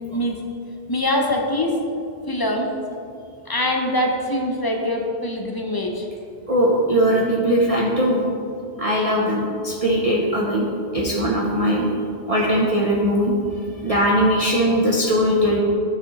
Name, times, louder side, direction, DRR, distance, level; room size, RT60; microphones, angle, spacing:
voice 1, 0.9-1.8 2.3-2.7 3.5-6.1, left 1 dB, 30° left, 1 dB, 0.5 m, -23 dB
voice 2, 6.5-8.2 8.8-10.7 10.9-11.9 12.3-13.4 13.8-15.6, equal, 40° right, -4 dB, 0.6 m, -20 dB
12.0 x 4.2 x 2.9 m, 2.4 s
omnidirectional pair, 1.1 m